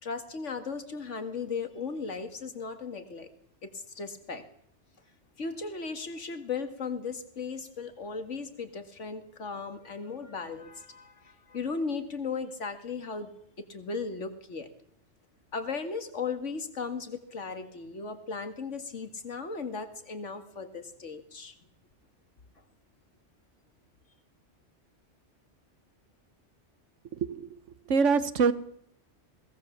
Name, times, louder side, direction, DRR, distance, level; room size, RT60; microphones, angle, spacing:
voice 1, 0.0-3.3 3.6-4.5 5.4-13.3 13.6-14.7 15.5-21.5, left 4 dB, 85° left, 8 dB, 2.3 m, -36 dB
voice 2, 27.1-27.5 27.9-28.5, right 5 dB, 90° right, 14 dB, 1.4 m, -24 dB
21.0 x 18.0 x 7.2 m, 0.72 s
omnidirectional pair, 1.2 m